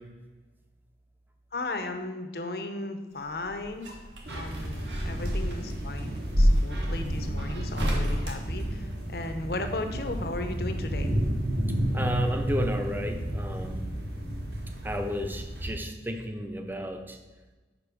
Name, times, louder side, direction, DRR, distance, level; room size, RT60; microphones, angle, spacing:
voice 1, 1.5-3.9 4.3-11.1, left 2 dB, 60° left, 7 dB, 0.7 m, -36 dB
sound 1, 3.3-9.3 10.7-11.6 11.9-12.0, equal, 90° right, 1.4 m, -29 dB
sound 2, 4.2-15.7, right 1 dB, 65° right, 1.2 m, -32 dB
voice 2, 11.9-13.8 14.8-17.2, equal, 10° right, 5 dB, 0.5 m, -32 dB
5.2 x 5.2 x 6.1 m, 1.2 s
head